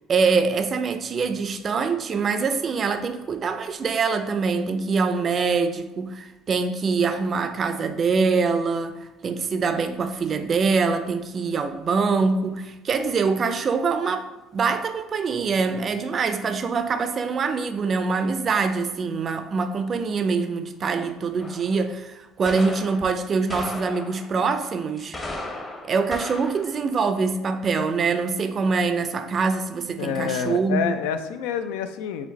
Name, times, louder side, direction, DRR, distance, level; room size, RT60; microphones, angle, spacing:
voice 1, 0.1-14.3 14.5-25.2 25.8-31.0, right 4 dB, 40° right, 0.4 m, -24 dB
sound 1, 21.4-21.8 22.5-23.0 23.5-24.4 25.0-26.8, left 2 dB, 20° left, 0.7 m, -35 dB
voice 2, 30.0-32.3, left 7 dB, 85° left, 0.3 m, -28 dB
4.8 x 2.2 x 4.0 m
supercardioid pair, 95°, 0 cm